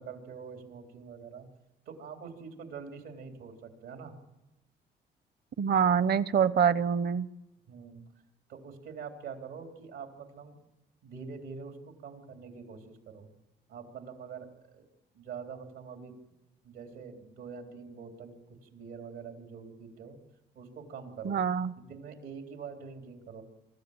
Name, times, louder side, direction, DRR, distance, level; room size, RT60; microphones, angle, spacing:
voice 1, 0.0-1.5 1.9-4.1 7.7-8.1 8.5-10.6 11.0-11.8 12.0-13.3 13.7-14.9 15.1-16.1 16.6-18.4 18.7-20.2 20.5-21.4 21.8-23.4, right 6 dB, 90° right, 3 dB, 3.8 m, -45 dB
voice 2, 5.6-7.3 21.2-21.7, right 7 dB, 55° right, 16 dB, 0.9 m, -25 dB
23.5 x 14.0 x 8.8 m, 0.98 s
cardioid pair, 90°, 20 cm